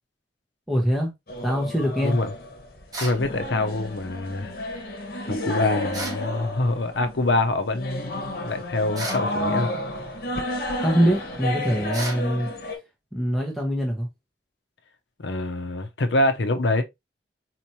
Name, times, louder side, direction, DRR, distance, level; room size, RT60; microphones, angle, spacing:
voice 1, 0.7-1.1 1.4-2.2 10.8-12.5 13.1-14.1, equal, ahead, 0.9 m, -23 dB
sound 1, 1.3-12.8, left 1 dB, 55° left, 1.1 m, -31 dB
sound 2, 2.9-3.2 5.9-6.2 8.9-9.3 11.9-12.2, right 2 dB, 20° right, 1.2 m, -33 dB
voice 2, 3.0-4.6 5.3-9.7 15.2-16.8, left 2 dB, 75° left, 0.7 m, -25 dB
4.3 x 3.0 x 2.7 m
head